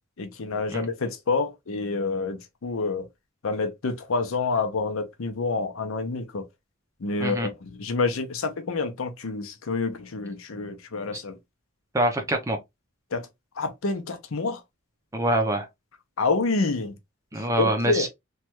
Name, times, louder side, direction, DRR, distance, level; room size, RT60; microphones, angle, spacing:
voice 1, 0.2-3.1 3.4-6.4 7.0-11.4 13.1-13.3 13.6-14.6 16.2-16.9 17.6-18.1, left 3 dB, 75° left, 0.6 m, -28 dB
voice 2, 11.9-12.6 15.1-15.7 17.3-18.1, right 1 dB, 15° right, 0.5 m, -25 dB
3.2 x 2.2 x 2.9 m
head